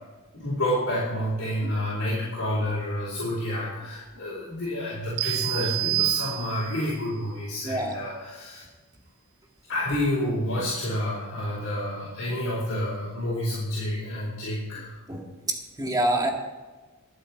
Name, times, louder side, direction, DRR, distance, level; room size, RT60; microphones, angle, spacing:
voice 1, 0.3-8.6 9.7-15.0, left 1 dB, 55° left, -7 dB, 4.3 m, -29 dB
sound 1, 5.2-6.9, right 18 dB, 65° right, 0.3 m, -27 dB
voice 2, 7.6-8.0 15.1-16.3, right 1 dB, 15° right, 2 dB, 1.9 m, -27 dB
22.5 x 7.9 x 4.5 m, 1.3 s
head